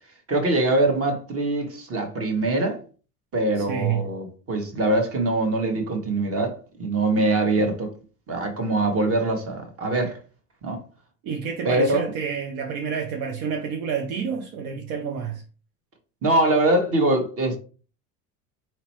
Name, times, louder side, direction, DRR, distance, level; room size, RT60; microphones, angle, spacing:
voice 1, 0.3-2.8 3.3-7.9 8.3-10.2 10.6-10.8 11.6-12.0 16.2-17.6, right 2 dB, 40° right, 1.4 m, -23 dB
voice 2, 3.6-4.1 11.2-15.4, right 7 dB, 70° right, 0.7 m, -29 dB
4.4 x 2.9 x 3.0 m
supercardioid pair, 90°, 37 cm